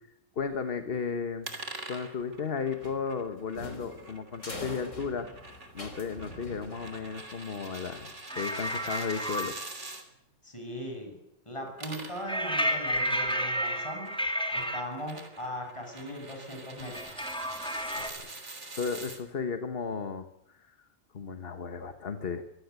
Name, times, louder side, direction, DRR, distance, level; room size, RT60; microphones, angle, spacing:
voice 1, 0.3-1.5 1.9-5.3 5.7-9.6 18.0-20.8 21.1-22.4, left 5 dB, 50° left, 8 dB, 1.5 m, -35 dB
sound 1, 1.4-10.0 11.6-19.2, right 2 dB, 65° right, 3.4 m, -45 dB
sound 2, 2.8-7.3, left 2 dB, 75° left, 3.9 m, -44 dB
sound 3, 8.3-9.5 12.3-14.8 16.8-18.1, equal, 5° left, 2.7 m, -31 dB
voice 2, 10.4-11.2 11.5-14.1 14.5-17.2, equal, 25° left, 3 dB, 7.0 m, -39 dB
24.5 x 16.5 x 8.3 m, 0.83 s
omnidirectional pair, 1.3 m